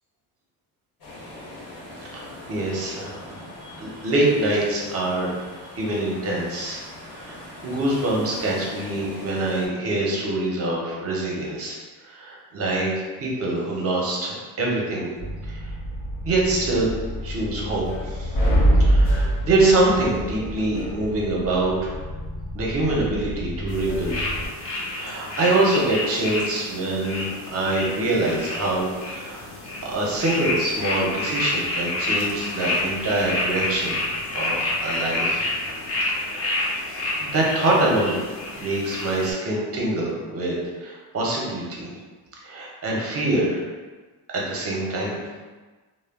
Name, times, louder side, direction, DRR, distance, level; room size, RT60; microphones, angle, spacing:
sound 1, 1.0-9.7, left 1 dB, 80° left, 1.0 m, -41 dB
voice 1, 2.1-5.4 5.8-6.8 7.1-11.8 12.0-15.1 15.5-15.6 16.2-16.9 17.2-18.3 18.8-21.9 22.5-24.3 24.8-29.4 29.8-34.0 34.3-35.5 36.1-36.8 37.2-38.1 38.5-41.9 42.4-43.7 44.3-45.2, right 2 dB, 35° right, -3 dB, 0.6 m, -25 dB
sound 2, 15.2-24.5, right 1 dB, 60° left, 0.9 m, -25 dB
sound 3, 23.7-39.3, left 2 dB, 35° left, 0.5 m, -29 dB
2.2 x 2.0 x 3.4 m, 1.3 s
cardioid pair, 165°, 42 cm